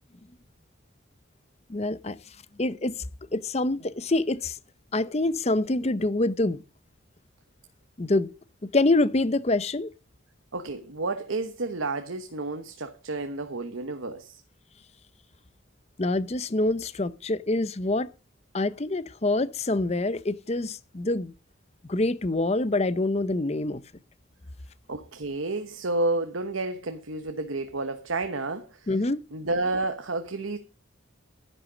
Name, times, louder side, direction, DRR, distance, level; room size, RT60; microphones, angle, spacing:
voice 1, 1.7-2.2 2.6-3.0 3.3-4.6 4.9-6.6 8.0-8.3 8.6-9.9 16.0-18.1 18.5-21.3 21.9-23.8 28.9-29.2, left 2 dB, 30° left, 0.6 m, -26 dB
voice 2, 10.5-14.4 24.9-28.9 29.3-30.6, right 2 dB, 85° right, 1.1 m, -30 dB
11.0 x 10.5 x 5.1 m
head